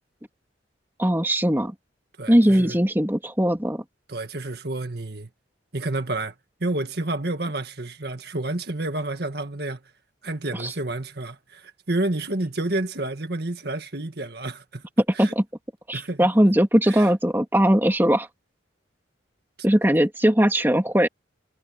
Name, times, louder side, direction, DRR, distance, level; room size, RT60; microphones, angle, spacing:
voice 1, 1.0-1.7 2.3-3.8 10.6-10.7 15.2-15.4 15.9-18.3 19.6-21.1, equal, 10° right, 2.3 m, -20 dB
voice 2, 2.2-2.8 4.1-5.3 5.7-6.4 6.6-9.8 10.2-14.9 15.1-15.3 15.9-16.3 16.8-17.1, right 2 dB, 55° right, 1.8 m, -29 dB
head